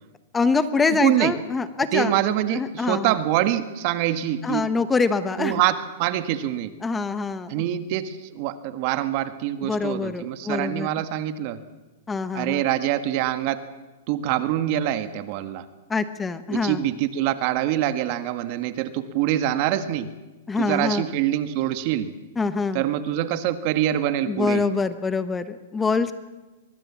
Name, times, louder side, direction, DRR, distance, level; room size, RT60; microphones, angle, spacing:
voice 1, 0.3-2.1 2.5-3.1 4.4-5.6 6.8-7.5 9.6-10.9 12.1-12.6 15.9-16.8 20.5-21.0 22.4-22.8 24.3-26.1, left 4 dB, 10° left, 12 dB, 1.2 m, -24 dB
voice 2, 0.9-1.3 1.9-4.7 5.4-6.7 7.5-11.6 12.3-13.6 14.1-15.7 16.5-20.1 20.6-22.1 22.7-24.6, right 12 dB, 45° right, 10 dB, 1.6 m, -25 dB
23.0 x 23.0 x 7.5 m, 1.1 s
hypercardioid pair, 135°, 0 cm